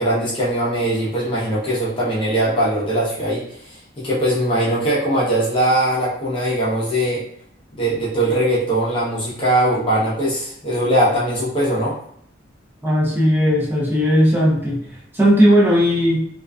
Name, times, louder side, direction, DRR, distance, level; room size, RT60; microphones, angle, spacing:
voice 1, 0.0-7.2 7.8-12.0, right 1 dB, 25° left, -8 dB, 0.7 m, -20 dB
voice 2, 12.8-16.3, equal, 10° right, -4 dB, 0.5 m, -17 dB
2.5 x 2.2 x 2.3 m, 0.67 s
head